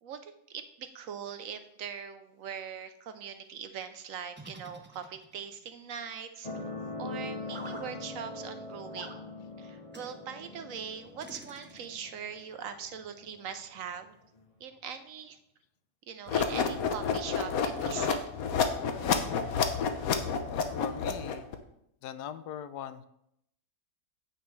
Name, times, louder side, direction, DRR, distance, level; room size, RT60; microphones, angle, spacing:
voice 1, 0.0-6.5 7.0-14.1 14.6-15.4 16.1-18.2, right 7 dB, 65° right, 9 dB, 0.9 m, -41 dB
sound 1, 4.3-5.5 7.5-7.9 8.9-9.2 9.9-10.1 11.2-12.1, right 1 dB, 15° right, 0.4 m, -47 dB
sound 2, 6.4-13.5 14.4-14.5, left 2 dB, 30° left, 0.8 m, -42 dB
sound 3, 16.3-21.5, left 6 dB, 65° left, 1.2 m, -29 dB
voice 2, 20.8-21.5 22.0-23.1, left 10 dB, 90° left, 12 dB, 1.1 m, -40 dB
9.3 x 8.2 x 3.2 m, 0.77 s
omnidirectional pair, 1.7 m